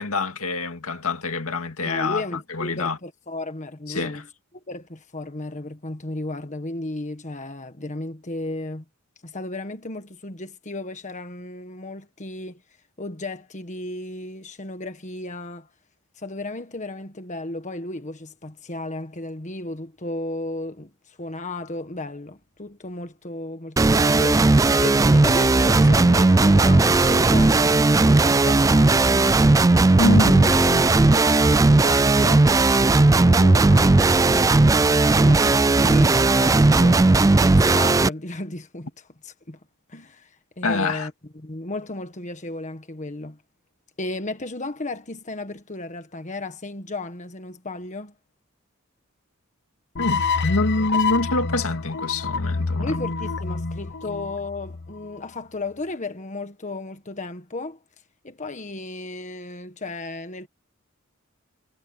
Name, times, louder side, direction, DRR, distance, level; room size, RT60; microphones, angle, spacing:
voice 1, 0.0-2.2 2.5-3.0 3.9-4.2 30.0-31.0 40.6-41.1 50.0-53.0, left 2 dB, 85° left, 2.1 m, -26 dB
voice 2, 1.8-4.3 4.5-8.8 9.2-12.6 13.0-15.7 16.2-29.4 29.9-32.6 33.2-39.6 39.9-40.3 40.6-43.4 44.0-48.1 52.7-57.8 58.2-60.5, left 2 dB, 35° left, 1.6 m, -34 dB
sound 1, 23.8-38.1, right 2 dB, 15° right, 0.3 m, -16 dB
sound 2, 50.0-55.2, left 4 dB, 55° left, 1.0 m, -27 dB
head